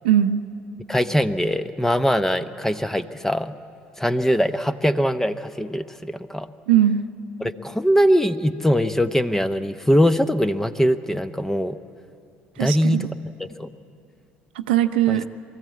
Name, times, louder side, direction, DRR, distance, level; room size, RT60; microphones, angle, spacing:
voice 1, 0.0-0.4 6.7-7.1 12.6-13.1 14.5-15.2, right 11 dB, 80° right, 10 dB, 0.7 m, -20 dB
voice 2, 0.9-3.5 4.0-6.5 7.4-11.8 12.6-13.1 13.4-13.7 15.1-15.3, equal, 5° left, 12 dB, 0.8 m, -21 dB
23.0 x 14.0 x 8.5 m, 2.6 s
hypercardioid pair, 60°, 6 cm